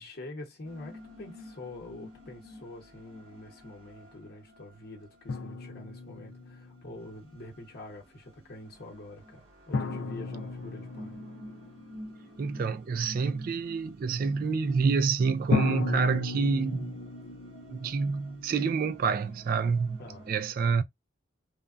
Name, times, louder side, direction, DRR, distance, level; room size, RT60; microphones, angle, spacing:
voice 1, 0.0-11.2 20.0-20.3, left 2 dB, 55° left, 0.9 m, -46 dB
sound 1, 0.6-20.3, equal, 80° right, 1.1 m, -51 dB
sound 2, 5.3-7.1 9.7-12.6 15.5-19.3, left 3 dB, 75° left, 0.5 m, -34 dB
voice 2, 12.4-16.9 17.7-20.0 20.3-20.8, right 5 dB, 50° right, 0.3 m, -27 dB
3.3 x 2.2 x 2.4 m
head